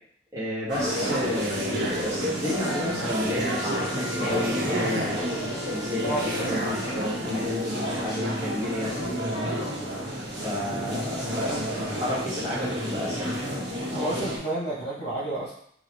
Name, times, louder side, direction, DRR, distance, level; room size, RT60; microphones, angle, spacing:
voice 1, 0.3-5.1 5.7-9.8 10.4-11.5 11.9-13.6, left 1 dB, 20° right, -9 dB, 1.3 m, -32 dB
sound 1, 0.7-14.4, equal, 85° right, 1.3 m, -30 dB
Male speech man speaking, 1.4-2.2 2.9-3.7 4.3-5.3 6.0-6.8, right 2 dB, 50° right, 0.5 m, -35 dB
Wind instrument woodwind instrument, 2.4-7.5, equal, 5° left, 1.0 m, -41 dB
voice 2, 5.8-6.4 11.3-11.5 13.9-15.5, right 1 dB, 70° left, -9 dB, 1.0 m, -31 dB
4.0 x 2.4 x 2.9 m, 0.67 s
head